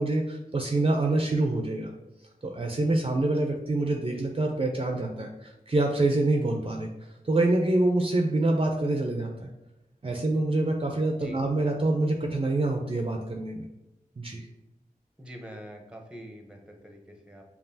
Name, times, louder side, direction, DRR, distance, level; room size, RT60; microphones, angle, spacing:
voice 1, 0.0-1.9 2.4-6.9 7.2-9.5 10.0-13.7 14.2-14.5, right 2 dB, 40° right, 2 dB, 0.4 m, -26 dB
voice 2, 15.2-17.4, equal, 5° right, 2 dB, 0.7 m, -45 dB
5.3 x 2.4 x 2.6 m, 0.93 s
wide cardioid pair, 45°, 15 cm